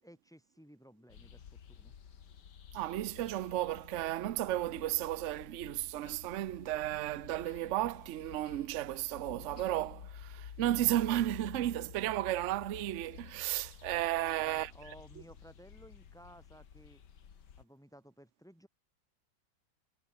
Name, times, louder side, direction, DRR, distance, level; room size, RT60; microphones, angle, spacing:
voice 1, 0.0-1.9 14.1-17.0 17.6-18.7, equal, ahead, 6.5 m, -56 dB
sound 1, 1.1-17.6, left 8 dB, 75° left, 2.1 m, -52 dB
voice 2, 2.7-14.7, right 14 dB, 60° right, 0.8 m, -34 dB
omnidirectional pair, 1.8 m